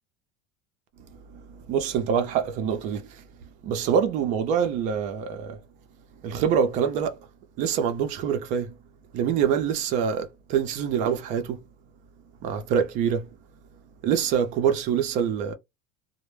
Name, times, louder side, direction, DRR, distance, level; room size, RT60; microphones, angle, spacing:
voice 1, 1.1-3.2 3.6-5.6 6.2-7.2 7.6-8.8 9.1-11.6 12.4-13.3 14.0-15.5, right 7 dB, 50° right, 0.6 m, -25 dB
2.1 x 2.1 x 3.1 m
supercardioid pair, 145°, 16 cm